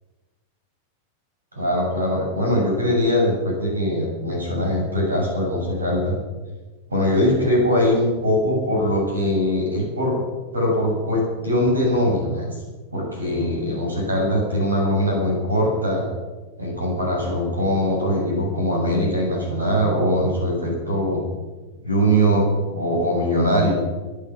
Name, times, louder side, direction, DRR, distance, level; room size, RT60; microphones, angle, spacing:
voice 1, 1.5-6.2 6.9-10.2 10.5-12.5 12.9-16.0 16.6-21.2 21.8-23.8, equal, 75° right, -1 dB, 7.3 m, -21 dB
22.5 x 10.0 x 6.2 m, 1.3 s
figure-of-eight pair, 90°, 0 cm